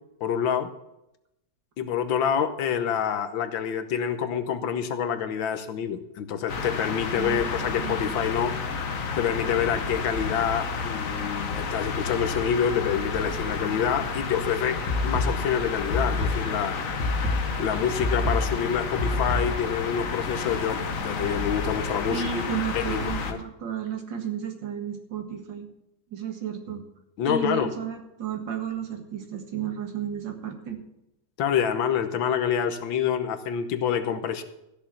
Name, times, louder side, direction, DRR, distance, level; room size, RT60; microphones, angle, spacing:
voice 1, 0.2-0.7 1.8-8.5 9.2-16.8 17.6-22.3 22.7-23.4 27.2-27.7 31.4-34.4, left 8 dB, 90° left, 9 dB, 1.8 m, -27 dB
sound 1, 6.5-23.3, left 4 dB, 50° left, 1.4 m, -31 dB
voice 2, 7.2-8.2 22.1-25.7 26.1-26.8 27.2-30.8, right 8 dB, 70° right, 5 dB, 2.4 m, -33 dB
sound 2, 14.9-19.8, left 2 dB, 65° left, 2.8 m, -28 dB
14.5 x 6.8 x 7.2 m, 0.87 s
omnidirectional pair, 2.1 m